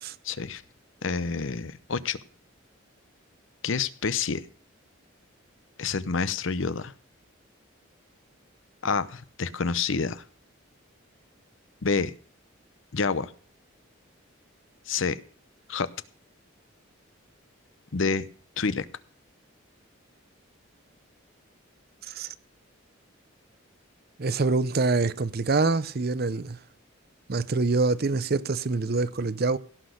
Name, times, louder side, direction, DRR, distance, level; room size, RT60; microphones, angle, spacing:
voice 1, 0.2-0.6 1.0-2.2 3.6-4.4 5.8-6.9 8.8-10.2 11.8-12.1 12.9-13.3 14.9-15.2 15.7-15.9 17.9-18.3 18.6-18.9, left 5 dB, 70° left, 0.8 m, -28 dB
voice 2, 24.2-26.6 27.3-29.6, right 3 dB, 50° right, 0.6 m, -25 dB
17.0 x 6.2 x 6.4 m
head